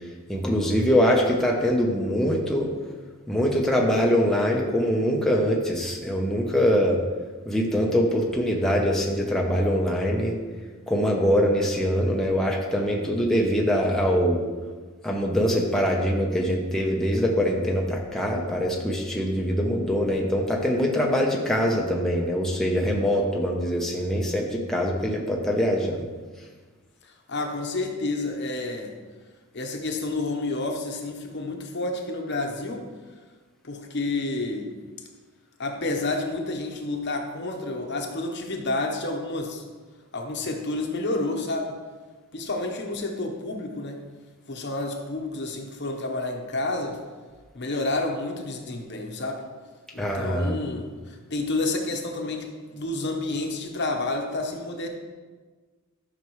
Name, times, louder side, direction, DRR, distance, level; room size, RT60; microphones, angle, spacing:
voice 1, 0.3-2.7 3.3-7.0 7.5-10.3 10.9-14.4 15.0-26.1 50.0-50.6, equal, ahead, -2 dB, 0.8 m, -23 dB
voice 2, 27.3-28.9 29.5-32.9 33.6-34.7 35.6-39.6 40.1-41.8 42.3-44.0 44.5-47.0 47.5-49.5 49.9-54.9, left 2 dB, 50° left, 3 dB, 1.0 m, -29 dB
12.5 x 6.0 x 3.1 m, 1.4 s
head